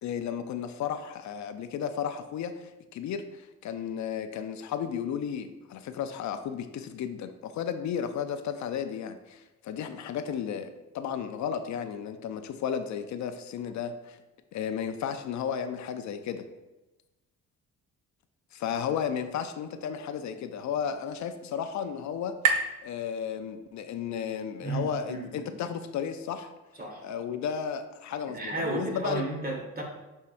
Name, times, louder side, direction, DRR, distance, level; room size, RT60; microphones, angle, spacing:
voice 1, 0.0-14.2 14.5-16.4 18.5-22.4 22.8-26.5 27.0-29.2, left 8 dB, 70° left, 9 dB, 0.5 m, -33 dB
sound 1, 20.1-23.9, right 5 dB, 80° right, 0.7 m, -34 dB
voice 2, 24.6-25.6 26.8-27.0 28.2-29.8, right 2 dB, 30° right, 1 dB, 1.7 m, -33 dB
8.4 x 4.6 x 2.6 m, 1.1 s
cardioid pair, 90°, 30 cm